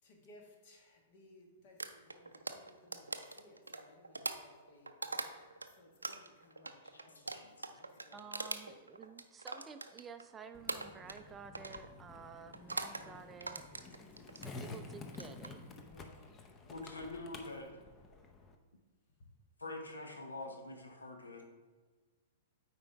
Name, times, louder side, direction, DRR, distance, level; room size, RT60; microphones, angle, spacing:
voice 1, 0.0-8.4 13.0-13.5 15.9-17.0 19.2-19.3, left 2 dB, 50° left, 1 dB, 1.5 m, -62 dB
sound 1, 1.8-5.7 6.0-10.3 10.7-11.3 11.5-11.9 12.5-13.0 13.4-14.5 15.1-15.5, right 3 dB, 90° right, 0.4 m, -42 dB
voice 2, 7.2-7.6 7.9-8.0 16.7-17.7 19.6-21.4, left 2 dB, 80° left, 3 dB, 1.0 m, -45 dB
voice 3, 8.1-13.8 14.3-15.6, right 6 dB, 20° right, 8 dB, 0.4 m, -52 dB
Skateboard, 10.5-18.5, left 3 dB, 25° left, 0.7 m, -51 dB
8.6 x 4.4 x 3.4 m, 1.4 s
figure-of-eight pair, 105°, 0 cm